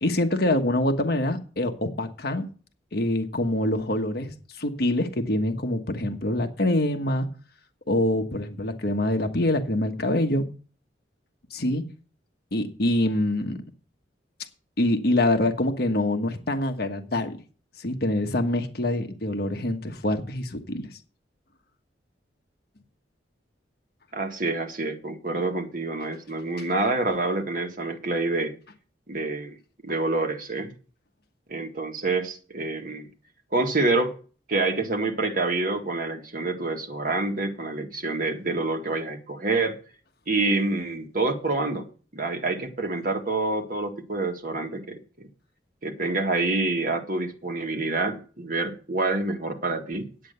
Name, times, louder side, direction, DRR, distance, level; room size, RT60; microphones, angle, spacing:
voice 1, 0.0-2.4 2.9-7.3 7.9-10.5 11.5-11.8 12.5-13.6 14.8-17.4 17.8-21.0, left 1 dB, 55° left, 1.3 m, -25 dB
voice 2, 24.1-28.5 29.1-29.6 29.8-30.7 31.5-33.1 33.5-34.1 34.5-39.8 40.3-41.9 42.1-45.3 45.8-50.3, right 2 dB, 50° right, 1.7 m, -27 dB
10.0 x 8.6 x 6.8 m
head